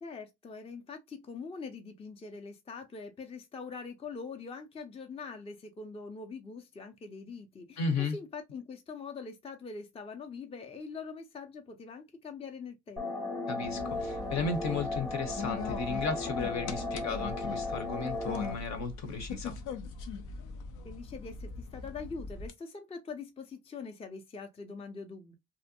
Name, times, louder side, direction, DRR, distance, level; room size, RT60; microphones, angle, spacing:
voice 1, 0.0-13.3 20.8-25.3, left 4 dB, 20° left, 0.4 m, -43 dB
voice 2, 7.8-8.2 13.5-19.5, left 4 dB, 60° left, 0.9 m, -34 dB
sound 1, 13.0-18.5, left 2 dB, ahead, 0.8 m, -36 dB
sound 2, 13.6-22.5, left 5 dB, 85° left, 0.6 m, -41 dB
2.6 x 2.0 x 2.7 m
cardioid pair, 90°, 30 cm